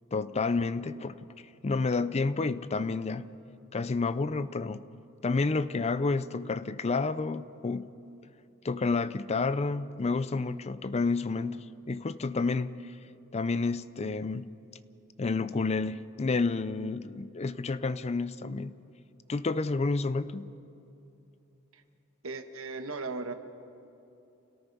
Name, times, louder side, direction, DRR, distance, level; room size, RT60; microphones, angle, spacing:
voice 1, 0.1-1.2 1.6-3.3 3.7-4.8 5.2-7.9 8.6-12.7 13.3-14.5 15.2-18.7 19.3-20.5, left 3 dB, 30° left, 0.5 m, -30 dB
voice 2, 22.2-23.3, right 3 dB, 70° right, 1.4 m, -37 dB
29.0 x 18.0 x 5.4 m
head